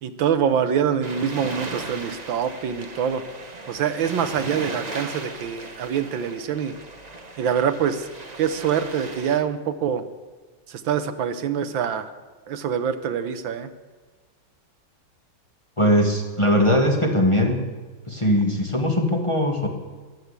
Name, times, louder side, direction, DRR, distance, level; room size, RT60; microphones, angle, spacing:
voice 1, 0.0-3.2 3.7-6.7 7.4-8.1 8.4-10.0 10.7-12.1 12.5-13.7, right 8 dB, 75° right, 10 dB, 1.6 m, -25 dB
sound 1, 1.0-9.4, right 2 dB, 25° right, 1.1 m, -37 dB
voice 2, 15.8-17.6 18.1-19.7, equal, 15° left, 1 dB, 1.5 m, -20 dB
15.0 x 10.5 x 8.1 m, 1.4 s
omnidirectional pair, 2.2 m